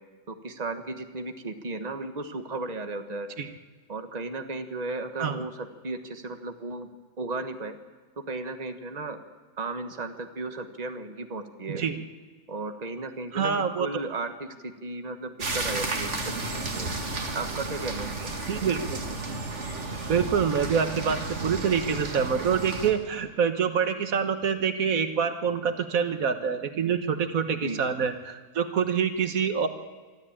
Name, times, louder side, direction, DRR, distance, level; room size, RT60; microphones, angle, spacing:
voice 1, 0.3-3.3 3.9-6.9 7.2-7.8 8.3-9.2 9.6-11.8 12.5-16.2 16.5-16.9 17.3-18.1 27.6-27.8, right 3 dB, 30° right, 7 dB, 1.4 m, -35 dB
voice 2, 11.7-12.0 13.3-13.9 18.5-19.0 20.1-29.7, right 6 dB, 85° right, 8 dB, 1.7 m, -26 dB
sound 1, 15.4-22.9, right 2 dB, 60° right, 2.3 m, -33 dB
23.5 x 13.5 x 8.7 m, 1.4 s
omnidirectional pair, 1.4 m